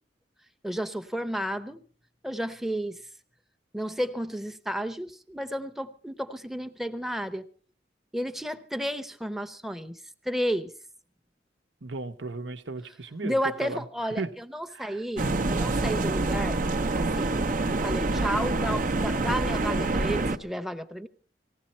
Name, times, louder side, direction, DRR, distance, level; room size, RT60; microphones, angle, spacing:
voice 1, 0.6-1.8 2.2-3.0 3.7-7.4 8.1-10.0 10.2-10.7 13.2-16.6 16.9-17.4 17.7-21.1, equal, ahead, 0.8 m, -32 dB
voice 2, 11.8-13.4 13.6-13.8 14.2-14.3 14.7-15.0, right 3 dB, 85° right, 1.1 m, -36 dB
sound 1, 15.2-20.4, right 2 dB, 50° right, 0.8 m, -26 dB
19.5 x 16.0 x 4.3 m
head